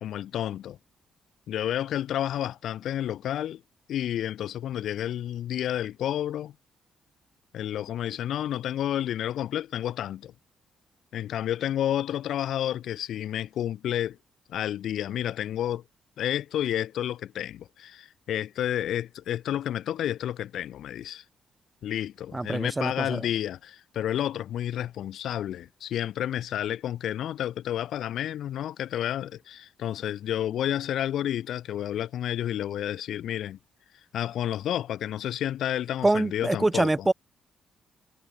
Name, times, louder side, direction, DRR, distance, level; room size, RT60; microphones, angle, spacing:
voice 1, 0.0-0.8 1.5-3.6 3.9-6.5 7.5-10.3 11.1-14.2 14.5-15.8 16.2-21.2 21.8-33.6 34.1-37.1, left 11 dB, 75° left, 2.5 m, -30 dB
voice 2, 22.3-23.3 36.0-37.1, right 2 dB, 15° right, 0.7 m, -25 dB
cardioid pair, 90°, 0 cm